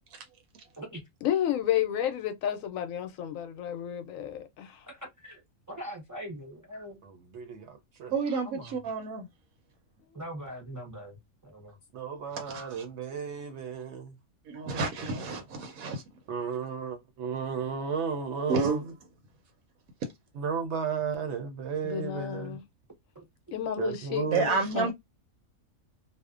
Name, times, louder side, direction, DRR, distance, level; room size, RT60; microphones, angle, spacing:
voice 1, 1.2-4.8 21.8-22.6 23.5-24.9, left 10 dB, 75° left, 1.0 m, -31 dB
voice 2, 4.9-7.0 8.4-8.7 10.1-11.2 11.4-11.8 23.1-23.2, equal, 25° right, 0.4 m, -42 dB
voice 3, 7.0-8.1 11.9-14.2 16.3-18.9 20.3-22.6 23.8-24.5, right 6 dB, 65° right, 0.8 m, -34 dB
voice 4, 8.1-9.3 12.3-12.8 14.5-16.0 18.5-18.8 24.3-24.9, right 4 dB, 85° right, 1.1 m, -30 dB
2.6 x 2.1 x 2.3 m
omnidirectional pair, 1.4 m